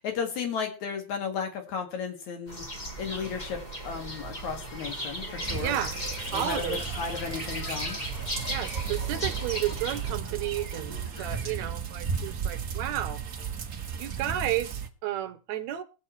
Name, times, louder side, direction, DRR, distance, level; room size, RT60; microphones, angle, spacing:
voice 1, 0.0-2.6 3.0-5.8 6.3-8.0, left 6 dB, 75° left, 3.3 m, -34 dB
sound 1, 2.5-10.1, equal, 25° left, 1.0 m, -37 dB
sound 2, 3.1-11.7, equal, 45° left, 5.7 m, -46 dB
sound 3, 5.4-14.9, right 7 dB, 50° right, 1.0 m, -35 dB
voice 2, 5.6-6.0 6.3-6.8 8.5-13.2 14.0-15.8, right 12 dB, 75° right, 2.1 m, -32 dB
20.0 x 7.1 x 4.4 m
omnidirectional pair, 3.3 m